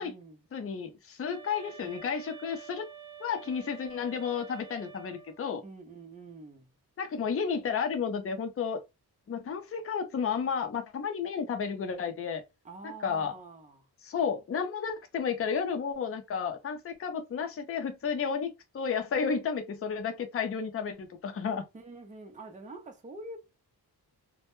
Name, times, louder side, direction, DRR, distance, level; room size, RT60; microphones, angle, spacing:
voice 1, 0.0-0.4 5.6-6.7 12.6-13.9 21.7-23.4, right 2 dB, 20° right, 0.5 m, -46 dB
voice 2, 0.5-2.9 3.2-5.6 7.0-8.8 9.3-12.4 12.8-13.3 14.0-21.7, left 6 dB, 35° left, 0.5 m, -32 dB
sound 1, 1.3-5.4, right 8 dB, 80° right, 0.8 m, -48 dB
2.1 x 2.1 x 2.9 m
wide cardioid pair, 140°, 39 cm